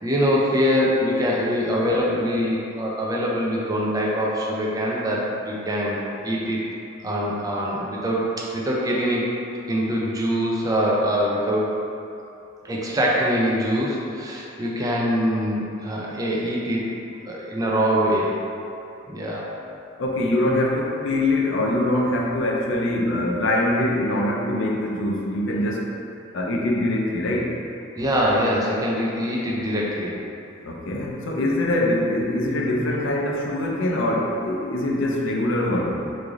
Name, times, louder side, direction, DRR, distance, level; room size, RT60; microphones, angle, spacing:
voice 1, 0.0-6.0 6.2-6.6 7.0-9.3 9.7-11.7 12.6-16.9 17.3-18.3 19.1-19.5 28.0-30.1, equal, 20° right, -4 dB, 0.4 m, -23 dB
voice 2, 20.0-25.9 26.3-27.6 30.6-36.0, left 1 dB, 65° left, -2 dB, 0.5 m, -23 dB
3.1 x 2.5 x 3.6 m, 2.7 s
head